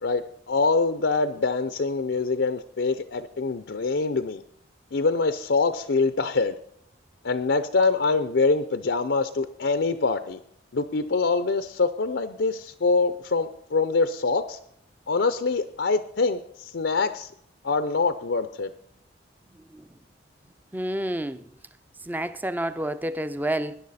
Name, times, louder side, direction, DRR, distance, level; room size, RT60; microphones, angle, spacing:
voice 1, 0.0-4.4 4.9-6.5 7.2-10.4 10.7-14.6 15.1-17.3 17.6-18.7, left 4 dB, 70° left, 0.5 m, -24 dB
voice 2, 19.5-19.9 20.7-21.5 22.0-23.8, right 1 dB, 10° right, 0.4 m, -29 dB
19.5 x 10.5 x 4.1 m
head